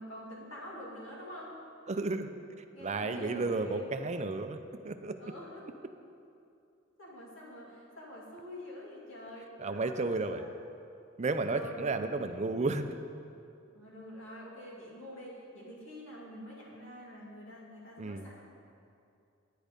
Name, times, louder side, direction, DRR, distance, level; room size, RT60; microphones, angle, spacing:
voice 1, 0.0-1.5 2.7-3.9 5.2-5.7 7.0-10.5 11.5-11.9 13.7-18.4, equal, 65° left, -5 dB, 2.5 m, -46 dB
voice 2, 1.9-2.3 2.8-4.6 4.8-5.2 9.6-10.4 11.2-12.9 18.0-18.2, right 3 dB, 35° right, 8 dB, 0.5 m, -32 dB
10.0 x 8.5 x 5.2 m, 2.6 s
head